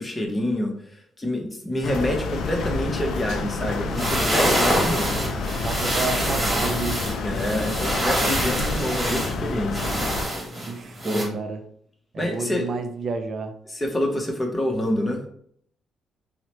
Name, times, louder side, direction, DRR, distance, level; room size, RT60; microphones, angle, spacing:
voice 1, 0.0-5.1 7.2-9.8 11.0-11.4 12.2-12.7 13.7-15.2, left 1 dB, 20° left, 2 dB, 0.8 m, -27 dB
sound 1, 1.8-10.2, left 3 dB, 70° left, 0.3 m, -29 dB
sound 2, 3.8-11.2, right 1 dB, 25° right, 1.3 m, -26 dB
voice 2, 5.5-7.0 10.7-11.6 12.1-13.5, right 4 dB, 55° right, 6 dB, 0.4 m, -30 dB
2.9 x 2.0 x 2.9 m, 0.64 s
supercardioid pair, 60°, 0 cm